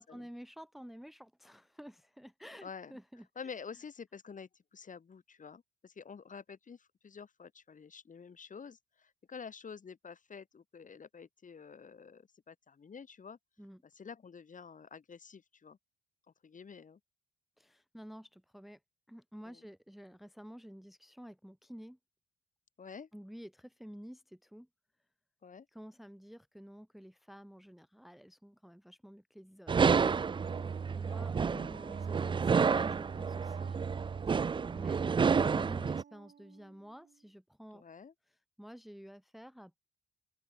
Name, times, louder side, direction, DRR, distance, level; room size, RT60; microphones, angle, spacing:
voice 1, 0.0-3.3 13.6-13.8 17.6-18.8 19.1-22.0 23.1-24.7 25.7-31.4 31.7-33.9 34.3-35.0 35.3-37.8 38.3-39.9, equal, ahead, 1.0 m, -51 dB
voice 2, 2.6-2.9 3.3-13.4 13.9-15.8 16.4-17.0 19.4-19.6 22.8-23.1 25.4-25.7 31.4-31.7 37.7-38.1, left 6 dB, 40° left, 4.7 m, -49 dB
Construction metal sounds, 29.7-36.0, right 5 dB, 25° right, 0.4 m, -30 dB
Wind instrument woodwind instrument, 30.3-37.3, right 8 dB, 50° right, 1.9 m, -56 dB
open air
cardioid pair, 90°, 20 cm